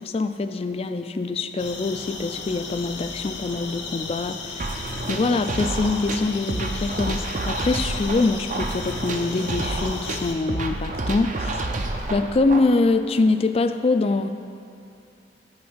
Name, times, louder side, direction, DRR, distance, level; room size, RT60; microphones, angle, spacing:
voice 1, 0.0-4.8 5.1-11.7 12.1-14.3, left 3 dB, 35° left, 9 dB, 0.3 m, -24 dB
sound 1, 1.6-10.4, left 4 dB, 75° left, 0.8 m, -36 dB
sound 2, 4.6-12.6, right 2 dB, 45° right, 0.5 m, -29 dB
9.5 x 4.7 x 6.2 m, 2.7 s
head